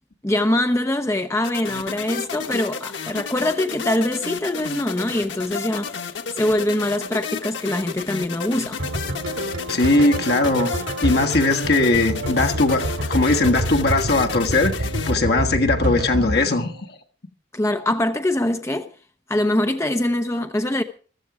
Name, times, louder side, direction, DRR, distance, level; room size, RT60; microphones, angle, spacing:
voice 1, 0.2-8.8 17.5-18.9 19.3-20.8, left 1 dB, 15° left, 0.8 m, -23 dB
sound 1, 1.4-15.1, left 5 dB, 85° left, 1.2 m, -32 dB
sound 2, 8.8-16.9, right 1 dB, 85° right, 2.3 m, -27 dB
voice 2, 9.7-10.7 11.0-16.7, left 2 dB, 60° left, 1.5 m, -19 dB
15.0 x 14.0 x 4.8 m
head